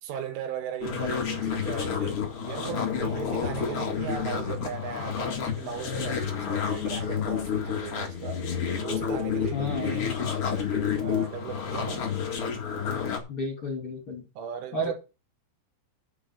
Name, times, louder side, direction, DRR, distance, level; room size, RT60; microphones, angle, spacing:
voice 1, 0.0-12.1 14.4-14.9, right 8 dB, 75° right, 3.9 m, -38 dB
sound 1, 0.8-13.2, left 7 dB, 90° left, 1.2 m, -30 dB
voice 2, 9.5-10.0 13.3-14.2 14.7-14.9, left 1 dB, 35° left, 2.7 m, -31 dB
7.2 x 6.8 x 8.0 m
omnidirectional pair, 5.8 m